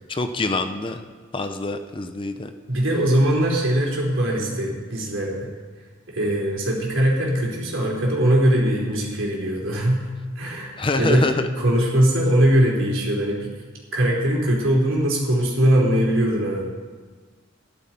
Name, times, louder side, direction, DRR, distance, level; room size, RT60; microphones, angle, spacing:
voice 1, 0.1-1.0 1.3-2.5 10.8-11.5, left 2 dB, 25° left, 8 dB, 0.7 m, -25 dB
voice 2, 2.7-5.5 6.1-10.1 10.4-11.2 11.6-13.5 13.9-16.7, right 1 dB, 85° right, -2 dB, 3.6 m, -21 dB
14.5 x 11.5 x 4.4 m, 1.4 s
head